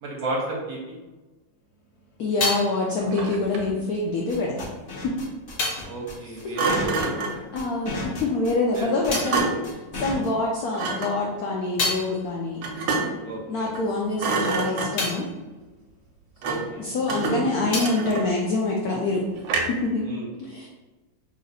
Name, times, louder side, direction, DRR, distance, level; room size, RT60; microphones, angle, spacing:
voice 1, 0.0-1.0 5.8-7.1 8.7-8.9 9.2-9.5 10.3-10.4 13.2-13.7 16.4-16.8 17.3-17.6 20.0-20.3, right 2 dB, 65° right, -3 dB, 1.0 m, -32 dB
sound 1, 1.6-7.6 7.8-10.5 10.9-17.0 17.2-19.3, left 3 dB, 65° left, 1.2 m, -35 dB
voice 2, 2.2-4.6 5.0-5.2 6.4-6.5 7.5-9.5 9.9-12.6 13.5-15.3 16.8-19.2 19.7-20.1 20.4-20.7, left 2 dB, 85° left, -1 dB, 0.8 m, -26 dB
Thump thud, 3.0-3.8 6.6-7.5 9.1-9.8 10.7-11.2 12.6-13.3 13.7-13.9 14.2-15.2 16.4-16.8 17.1-18.5 19.5-19.9, right 3 dB, 90° right, 1.4 m, -28 dB
sound 2, 4.3-10.3, left 2 dB, 45° left, 0.7 m, -35 dB
3.1 x 2.9 x 3.9 m, 1.2 s
omnidirectional pair, 2.1 m